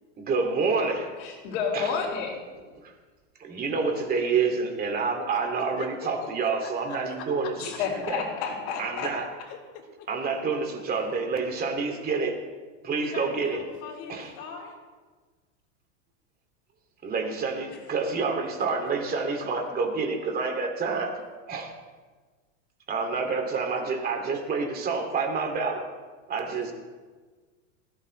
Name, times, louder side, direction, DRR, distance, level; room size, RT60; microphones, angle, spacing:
voice 1, 0.2-1.1 1.7-1.9 3.4-7.5 8.1-8.2 8.8-9.3 10.1-12.4 12.8-13.6 14.1-14.3 17.0-21.1 21.5-21.7 22.9-25.9 26.3-26.7, right 4 dB, 25° right, 3 dB, 2.5 m, -28 dB
voice 2, 1.2-2.3 7.6-9.1, left 6 dB, 70° left, -6 dB, 4.6 m, -30 dB
voice 3, 5.6-6.1 6.4-7.8 9.5-10.1 11.0-11.2 13.0-14.8 17.7-17.9 18.6-18.7 26.4-26.7, left 6 dB, 50° left, -1 dB, 3.9 m, -43 dB
20.0 x 16.5 x 3.3 m, 1.4 s
supercardioid pair, 145°, 38 cm